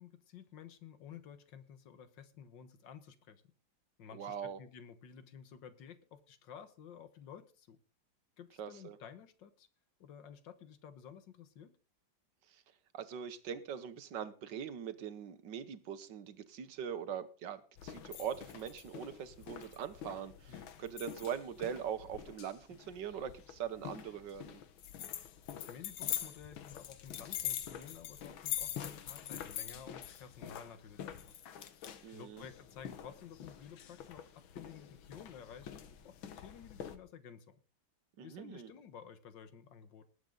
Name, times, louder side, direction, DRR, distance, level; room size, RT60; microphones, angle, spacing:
voice 1, 0.0-3.4 4.0-7.8 8.4-9.7 10.0-11.7 20.5-20.8 25.5-31.3 32.1-37.6 38.2-40.1, left 7 dB, 70° left, 11 dB, 1.9 m, -53 dB
voice 2, 4.1-4.6 8.6-9.0 12.9-24.6 32.0-32.4 38.2-38.7, right 8 dB, 65° right, 12 dB, 1.6 m, -42 dB
sound 1, 17.8-37.0, left 10 dB, 85° left, 1.9 m, -45 dB
19.5 x 8.8 x 3.9 m, 0.37 s
omnidirectional pair, 2.1 m